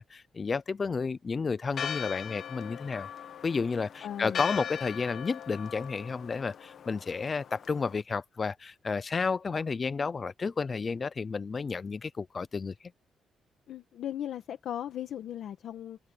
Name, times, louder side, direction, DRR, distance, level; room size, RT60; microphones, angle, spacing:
voice 1, 0.0-3.1 3.4-12.7, left 4 dB, 25° left, 0.5 m, -31 dB
Church bell, 1.7-8.0, left 8 dB, 45° left, 1.3 m, -40 dB
voice 2, 4.0-4.5 13.7-16.0, left 10 dB, 65° left, 1.6 m, -37 dB
cardioid pair, 170°, 0 cm